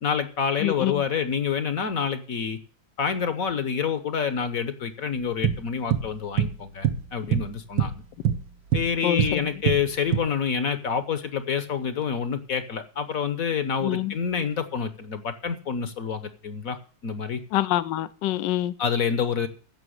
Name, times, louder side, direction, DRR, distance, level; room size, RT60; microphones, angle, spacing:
voice 1, 0.0-2.6 3.0-8.0 8.7-16.8 17.0-17.4 18.8-19.5, left 6 dB, 55° left, 1.3 m, -27 dB
voice 2, 0.6-1.0 9.0-9.4 13.8-14.1 17.5-18.7, left 13 dB, 75° left, 1.3 m, -26 dB
sound 1, 5.4-6.1 6.4-6.6 6.8-8.0 8.2-9.4 9.7-10.2, right 9 dB, 75° right, 1.8 m, -24 dB
15.0 x 6.0 x 6.5 m
omnidirectional pair, 2.1 m